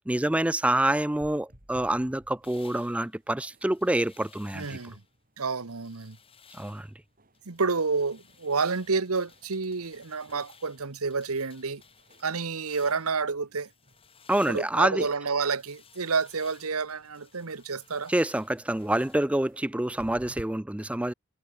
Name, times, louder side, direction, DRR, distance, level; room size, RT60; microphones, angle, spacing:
voice 1, 0.0-4.8 6.5-6.9 14.3-15.1 18.1-21.1, right 1 dB, 5° right, 0.3 m, -27 dB
sound 1, 0.6-20.4, equal, 40° right, 5.1 m, -58 dB
sound 2, 2.4-5.1 5.5-7.0 7.3-13.2 13.6-19.2, left 7 dB, 25° left, 3.1 m, -58 dB
voice 2, 4.5-5.0 5.4-6.2 7.5-11.8 12.2-13.7 14.5-18.1, right 4 dB, 85° right, 1.2 m, -29 dB
head